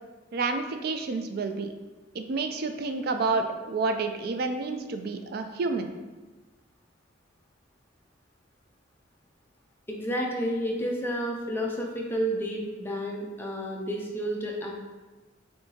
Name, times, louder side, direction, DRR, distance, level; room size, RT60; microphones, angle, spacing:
voice 1, 0.3-1.7 2.1-5.9, right 3 dB, 55° right, 7 dB, 0.4 m, -29 dB
voice 2, 9.9-14.7, equal, 10° left, -1 dB, 0.6 m, -30 dB
6.8 x 2.7 x 2.8 m, 1.2 s
head